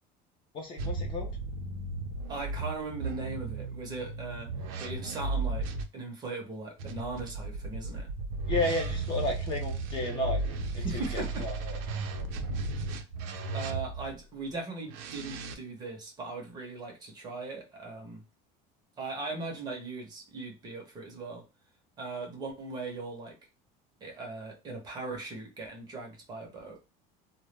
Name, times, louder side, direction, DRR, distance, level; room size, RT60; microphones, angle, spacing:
voice 1, 0.5-1.4 8.5-11.8, left 2 dB, 25° left, 1 dB, 0.4 m, -33 dB
sound 1, 0.8-5.8 6.8-14.2 14.9-15.5, right 3 dB, 85° right, 0.5 m, -35 dB
voice 2, 2.3-4.5 4.8-5.7 5.9-8.1 10.8-11.5 13.5-18.2 19.0-21.4 22.0-23.4 24.0-26.8, right 3 dB, 20° right, 1 dB, 0.6 m, -39 dB
2.1 x 2.0 x 3.1 m, 0.30 s
cardioid pair, 180°, 18 cm